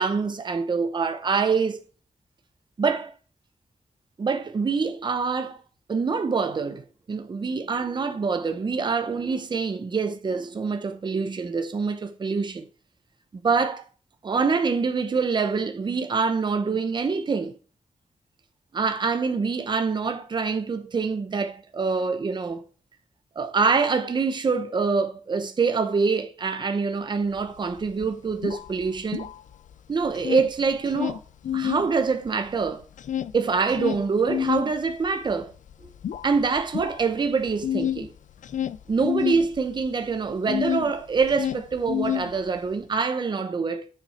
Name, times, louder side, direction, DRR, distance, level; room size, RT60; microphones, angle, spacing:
voice 1, 0.0-1.8 2.8-3.1 4.2-5.6 5.9-6.8 7.1-12.6 13.4-13.8 14.2-17.5 18.7-22.6 23.4-29.3 29.9-31.2 31.5-32.8 33.3-35.5 36.2-38.1 38.9-43.9, right 5 dB, 35° right, 0.8 m, -25 dB
sound 1, 27.4-27.5 27.7-29.7 30.0-31.9 32.3-40.9 41.2-42.7, left 10 dB, 90° left, 0.4 m, -29 dB
6.6 x 5.9 x 4.2 m
wide cardioid pair, 175°, 13 cm